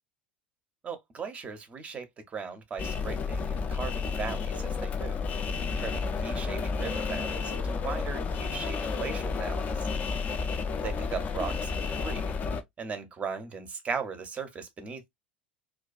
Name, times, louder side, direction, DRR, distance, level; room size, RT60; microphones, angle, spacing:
voice 1, 0.8-2.1 2.3-5.2 5.8-9.9 10.8-12.3 12.8-15.1, right 5 dB, 25° right, 0.6 m, -38 dB
sound 1, 2.8-12.6, left 5 dB, 30° left, 0.4 m, -31 dB
2.3 x 2.3 x 2.3 m
figure-of-eight pair, 75°, 5 cm